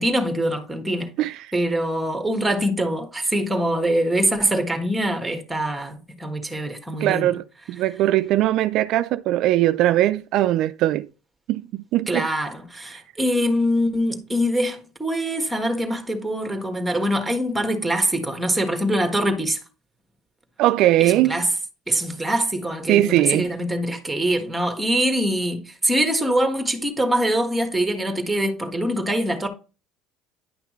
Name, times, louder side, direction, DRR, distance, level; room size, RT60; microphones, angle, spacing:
voice 1, 0.0-1.1 1.5-7.3 12.1-19.6 21.0-21.5 21.9-29.5, right 1 dB, 5° right, 1.4 m, -23 dB
voice 2, 1.2-1.5 7.0-11.1 11.5-12.3 20.6-21.4 22.9-23.5, right 14 dB, 60° right, 0.3 m, -20 dB
10.0 x 5.8 x 3.1 m
cardioid pair, 135°, 0 cm